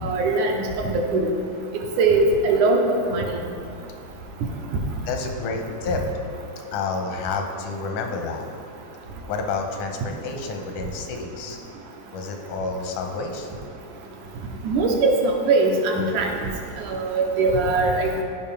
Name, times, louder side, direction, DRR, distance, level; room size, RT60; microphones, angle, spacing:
voice 1, 0.0-1.3 2.0-3.4 14.6-16.3 16.9-18.2, right 3 dB, 80° right, 1 dB, 2.3 m, -21 dB
voice 2, 5.1-6.0 6.7-8.5 9.3-11.6 12.1-13.5, left 4 dB, 85° left, 3 dB, 2.3 m, -29 dB
14.0 x 5.3 x 3.5 m, 2.4 s
omnidirectional pair, 3.5 m